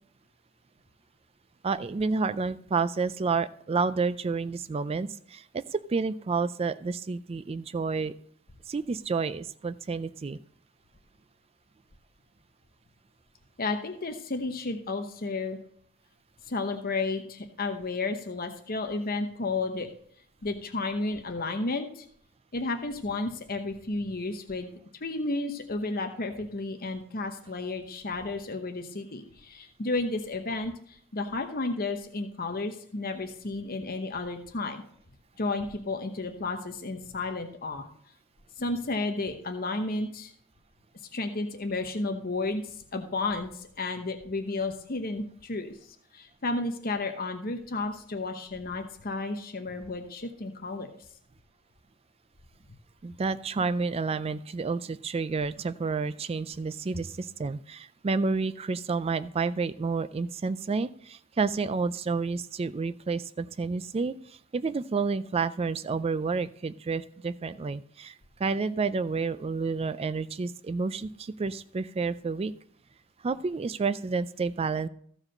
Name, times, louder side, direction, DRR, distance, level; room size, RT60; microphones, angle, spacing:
voice 1, 1.6-8.1 8.7-10.4 53.0-64.2 64.5-68.1 68.4-72.5 73.2-74.9, right 4 dB, 30° right, 14 dB, 0.3 m, -30 dB
voice 2, 13.6-15.6 16.5-19.9 20.4-22.0 22.5-24.7 25.0-34.8 35.4-37.9 38.6-40.3 41.1-45.8 46.1-50.9, left 3 dB, 45° left, 5 dB, 1.0 m, -32 dB
14.5 x 4.9 x 6.5 m, 0.63 s
head